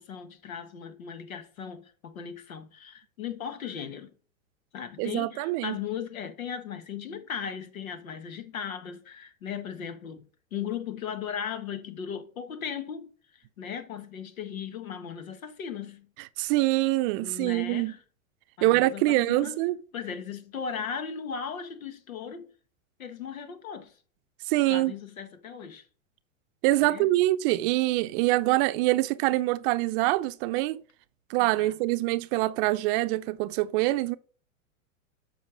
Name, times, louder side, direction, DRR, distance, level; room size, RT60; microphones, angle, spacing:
voice 1, 0.0-4.1 4.7-16.1 17.2-18.0 18.6-19.6 19.9-22.5 23.0-24.0 24.7-25.9 26.8-27.1 31.4-31.8, left 7 dB, 85° left, 1.6 m, -37 dB
voice 2, 5.0-5.8 16.4-17.9 18.6-19.8 24.5-24.9 26.6-30.8 31.3-34.2, right 18 dB, 40° right, 0.6 m, -25 dB
8.1 x 5.8 x 6.3 m
hypercardioid pair, 115°, 41 cm